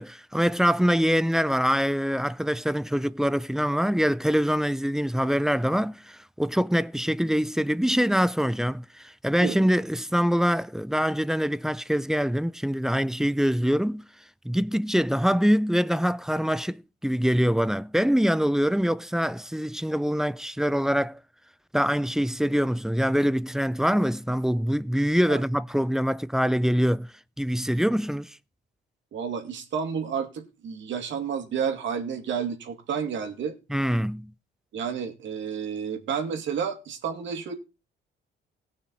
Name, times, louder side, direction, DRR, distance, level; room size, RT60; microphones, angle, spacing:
voice 1, 0.0-14.0 14.4-21.2 21.7-27.1 27.4-28.4 33.7-34.3, equal, ahead, 0.5 m, -24 dB
voice 2, 29.1-33.6 34.7-37.5, right 7 dB, 70° right, 2.4 m, -30 dB
18.0 x 6.1 x 4.1 m
cardioid pair, 90°, 20 cm